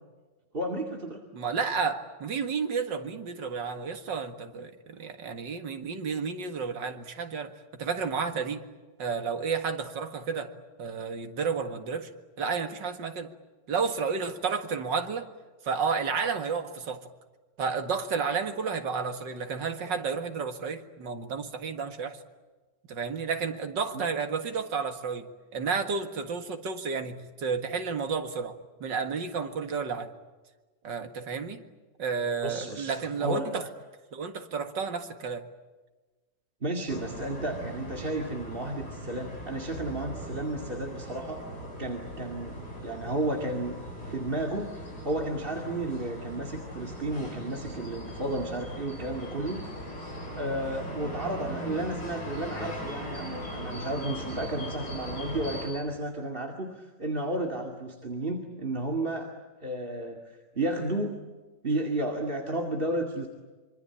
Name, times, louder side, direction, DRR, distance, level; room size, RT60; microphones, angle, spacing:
voice 1, 0.5-1.2 23.9-24.1 32.4-33.7 36.6-41.5 41.8-43.8 44.0-49.7 50.3-59.3 59.6-61.2 61.6-63.3, right 1 dB, 30° right, 2 dB, 2.4 m, -32 dB
voice 2, 1.3-8.6 9.0-10.5 10.8-12.1 12.4-13.3 13.7-15.3 15.6-17.1 17.6-22.2 22.9-28.5 28.8-30.1 30.8-31.6 32.0-33.6 34.1-35.5, right 5 dB, 75° right, 7 dB, 2.5 m, -31 dB
sound 1, 36.9-55.7, equal, 60° left, 7.2 m, -39 dB
26.0 x 25.0 x 8.8 m, 1.3 s
omnidirectional pair, 2.0 m